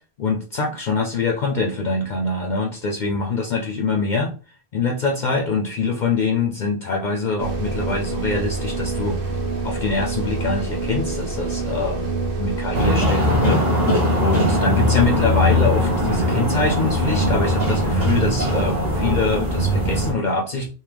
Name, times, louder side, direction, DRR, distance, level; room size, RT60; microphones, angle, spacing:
voice 1, 0.2-4.3 4.7-9.2 9.6-20.7, left 3 dB, 55° left, 1 dB, 0.6 m, -24 dB
sound 1, 7.4-12.9, right 3 dB, 65° right, 0.9 m, -26 dB
sound 2, 12.7-20.1, equal, 40° right, 1.1 m, -20 dB
3.6 x 2.7 x 3.3 m, 0.38 s
omnidirectional pair, 1.0 m